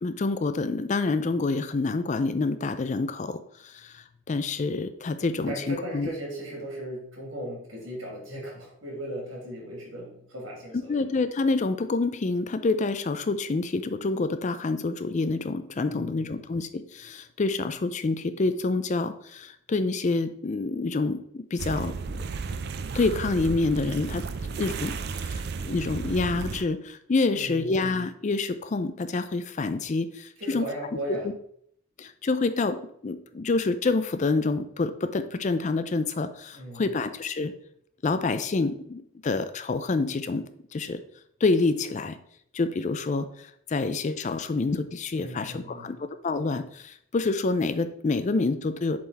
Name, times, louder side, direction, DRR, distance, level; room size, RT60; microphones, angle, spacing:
voice 1, 0.0-6.1 10.7-22.0 22.9-24.2 24.6-30.7 31.2-31.3 32.0-37.5 38.0-40.4 40.7-41.0 41.4-42.2 42.5-49.0, left 3 dB, 35° left, 11 dB, 0.4 m, -27 dB
voice 2, 5.5-11.0 15.9-16.4 27.3-27.8 30.4-31.2 36.5-36.9 45.1-45.9, right 1 dB, 75° right, -2 dB, 2.7 m, -37 dB
sound 1, 21.6-26.6, right 4 dB, 55° right, 0.4 m, -33 dB
7.6 x 3.9 x 4.1 m, 0.67 s
head